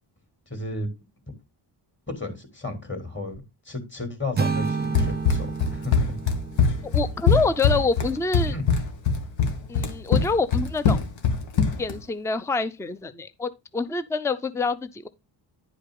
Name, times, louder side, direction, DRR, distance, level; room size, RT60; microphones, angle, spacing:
voice 1, 0.5-0.9 2.1-6.1 8.5-8.6, left 2 dB, 25° left, 3.0 m, -33 dB
sound 1, 4.4-8.4, right 5 dB, 20° right, 0.8 m, -31 dB
Run, 4.9-12.0, left 5 dB, 70° left, 1.5 m, -22 dB
voice 2, 6.8-8.5 9.7-11.0 11.8-15.1, left 4 dB, 5° left, 0.5 m, -26 dB
10.5 x 5.0 x 3.8 m
cardioid pair, 110°, 47 cm